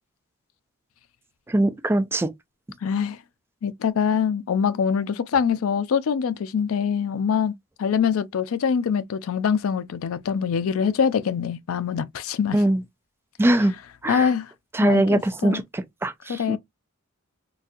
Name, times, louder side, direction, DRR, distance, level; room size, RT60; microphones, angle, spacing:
voice 1, 1.5-2.3 12.5-12.8 13.4-13.7 14.0-14.3 14.7-16.6, right 1 dB, 10° right, 0.3 m, -22 dB
voice 2, 2.8-3.2 3.6-7.5 7.8-12.6 14.1-14.5 14.8-15.6 16.3-16.6, left 7 dB, 85° left, 0.4 m, -24 dB
4.0 x 2.6 x 2.3 m
head